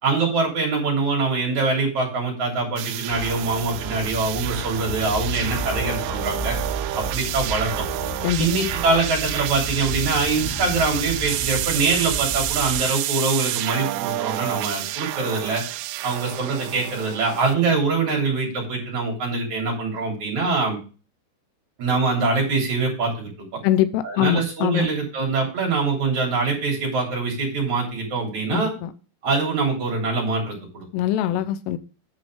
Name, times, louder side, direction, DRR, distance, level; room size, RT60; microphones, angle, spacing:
voice 1, 0.0-6.6 6.9-7.8 8.4-15.6 16.0-20.8 21.8-23.3 24.0-28.7 29.2-30.9 31.3-31.4, right 3 dB, 40° right, 4.2 m, -24 dB
sound 1, 2.8-17.5, right 16 dB, 90° right, 3.2 m, -29 dB
sound 2, 3.1-12.8, left 1 dB, 60° left, 4.7 m, -33 dB
voice 2, 23.6-24.9 28.5-28.9 30.9-31.8, left 11 dB, 90° left, 3.3 m, -22 dB
10.5 x 5.1 x 6.2 m
omnidirectional pair, 5.6 m